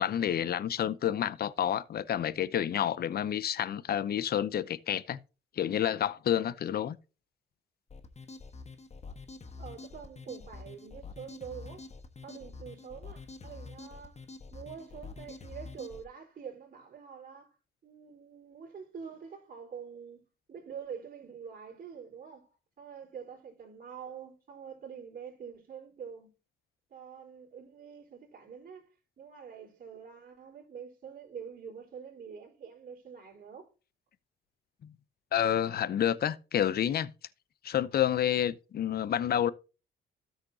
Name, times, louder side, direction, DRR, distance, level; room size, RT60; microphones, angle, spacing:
voice 1, 0.0-5.2 5.6-7.0 35.3-37.1 37.6-39.5, left 10 dB, 50° left, 0.6 m, -29 dB
sound 1, 7.9-16.0, left 4 dB, 35° left, 1.3 m, -46 dB
voice 2, 9.6-11.8 12.2-14.2 14.5-17.5 17.8-20.2 20.5-26.3 26.9-33.7, right 7 dB, 45° right, 4.2 m, -46 dB
13.0 x 6.5 x 2.8 m
cardioid pair, 90°, 20 cm